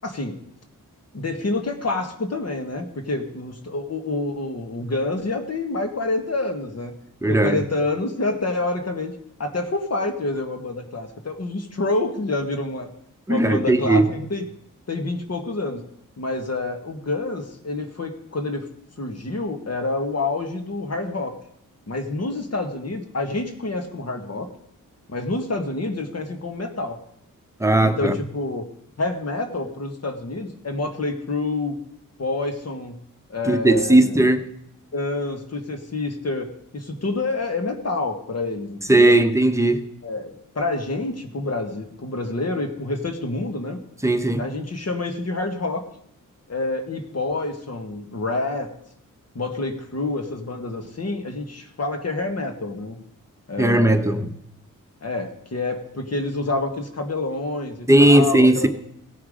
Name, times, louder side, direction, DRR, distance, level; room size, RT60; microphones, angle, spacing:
voice 1, 0.0-0.4 1.1-6.9 7.3-9.1 9.4-12.9 13.3-14.5 14.9-15.8 16.2-18.7 19.0-21.4 21.9-24.5 25.1-27.0 27.8-28.6 29.0-31.7 32.2-33.0 33.3-34.3 34.9-39.2 40.0-43.8 44.4-45.8 46.5-48.7 49.3-53.0 53.5-54.2 55.0-58.7, left 2 dB, 50° left, 1.7 m, -27 dB
voice 2, 7.2-7.6 13.3-14.1 27.6-28.1 33.5-34.4 38.9-39.8 44.0-44.4 53.6-54.3 57.9-58.7, right 1 dB, 10° right, 1.0 m, -17 dB
17.0 x 5.9 x 5.0 m
wide cardioid pair, 80°, 33 cm